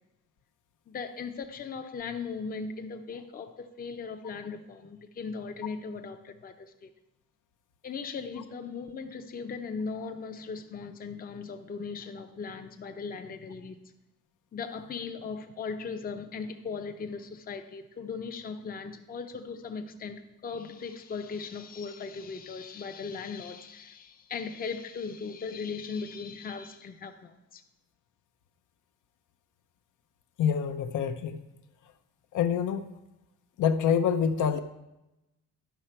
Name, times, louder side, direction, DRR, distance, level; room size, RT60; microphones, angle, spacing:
voice 1, 0.9-6.9 7.8-13.8 14.5-27.6, left 5 dB, 30° left, 6 dB, 0.6 m, -38 dB
voice 2, 30.4-31.4 32.3-32.8 33.6-34.6, left 7 dB, 80° left, 6 dB, 0.7 m, -26 dB
11.5 x 5.7 x 4.3 m, 0.97 s
cardioid pair, 150°, 31 cm